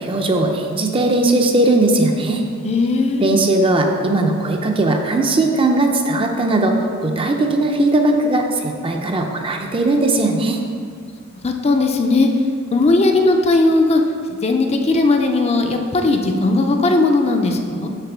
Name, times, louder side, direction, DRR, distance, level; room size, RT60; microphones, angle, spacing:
voice 1, 0.0-2.4 3.2-10.6, right 2 dB, 25° right, 3 dB, 0.5 m, -18 dB
voice 2, 2.6-3.4 11.3-12.3 12.7-14.0 14.3-17.9, left 2 dB, 30° left, 4 dB, 0.4 m, -17 dB
6.7 x 3.5 x 6.0 m, 2.2 s
head